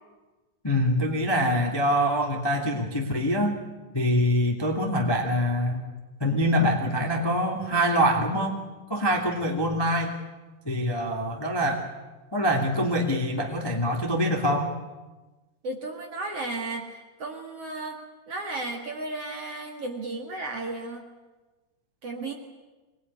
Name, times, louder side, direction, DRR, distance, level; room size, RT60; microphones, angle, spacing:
voice 1, 0.6-3.6 3.9-5.8 6.2-8.6 8.9-10.1 10.6-11.8 12.3-14.7, equal, 30° left, 1 dB, 0.4 m, -24 dB
voice 2, 15.6-18.0 18.3-21.1 22.0-22.3, right 2 dB, 50° right, 2 dB, 1.9 m, -34 dB
24.0 x 20.0 x 9.7 m, 1.2 s
omnidirectional pair, 5.6 m